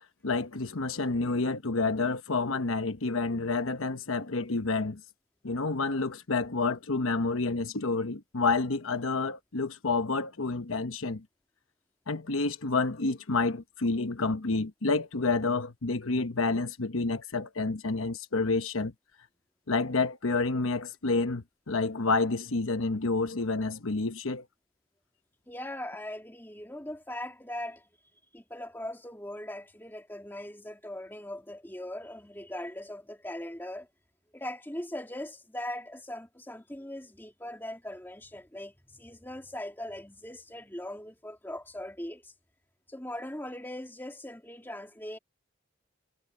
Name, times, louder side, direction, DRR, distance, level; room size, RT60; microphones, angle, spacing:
voice 1, 0.2-5.0 5.4-11.2 12.1-18.9 19.7-24.4, left 3 dB, 85° left, 1.1 m, -29 dB
voice 2, 25.5-27.9 28.3-33.9 34.3-42.3 42.9-45.2, left 1 dB, 10° left, 2.6 m, -40 dB
head